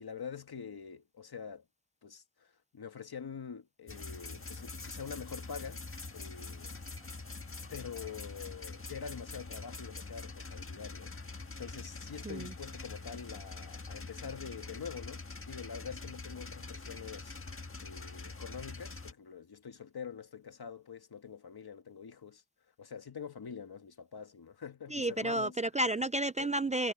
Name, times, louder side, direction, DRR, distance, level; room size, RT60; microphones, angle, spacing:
voice 1, 0.0-1.7 2.0-5.8 6.1-6.7 7.7-17.4 17.8-22.4 22.8-25.6 26.4-26.5, left 6 dB, 70° left, 2.1 m, -45 dB
sound 1, 3.9-19.1, left 3 dB, 35° left, 1.7 m, -44 dB
Fire, 3.9-18.9, right 6 dB, 85° right, 5.3 m, -64 dB
voice 2, 24.9-26.9, right 1 dB, 20° right, 0.3 m, -31 dB
wide cardioid pair, 95°, 39 cm